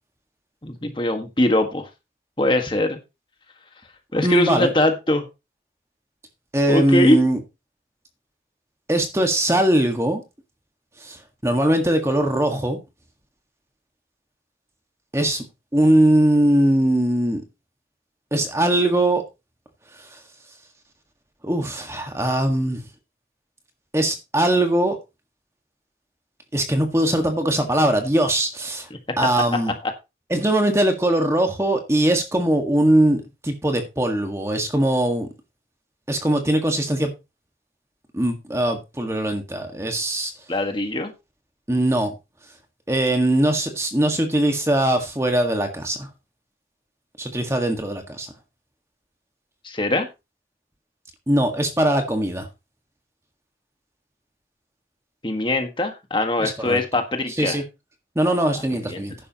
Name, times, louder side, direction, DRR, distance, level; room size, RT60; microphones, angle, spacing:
voice 1, 0.6-1.9 2.4-3.0 4.1-5.3 6.7-7.2 40.5-41.1 49.6-50.1 55.2-57.6 58.7-59.1, left 1 dB, 30° left, 1.6 m, -22 dB
voice 2, 4.2-4.7 6.5-7.4 8.9-10.2 11.0-12.8 15.1-15.4 15.7-17.4 18.3-19.2 20.0-20.2 21.4-22.8 23.9-25.0 26.5-28.9 29.2-29.7 30.3-35.3 36.1-37.1 38.1-40.3 41.7-42.1 42.9-46.1 47.2-48.3 51.3-52.5 56.4-56.8 57.4-57.6 58.2-59.1, right 1 dB, 15° right, 1.7 m, -21 dB
12.0 x 10.0 x 3.0 m
head